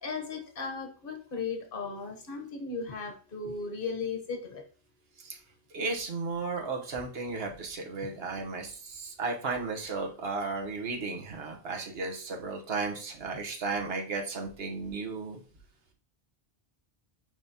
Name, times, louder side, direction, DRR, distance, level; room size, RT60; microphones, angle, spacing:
voice 1, 0.0-4.6, left 4 dB, 55° left, 4 dB, 1.3 m, -36 dB
voice 2, 5.7-15.4, right 3 dB, 65° right, 2 dB, 1.3 m, -34 dB
9.6 x 3.5 x 2.8 m, 0.38 s
omnidirectional pair, 1.1 m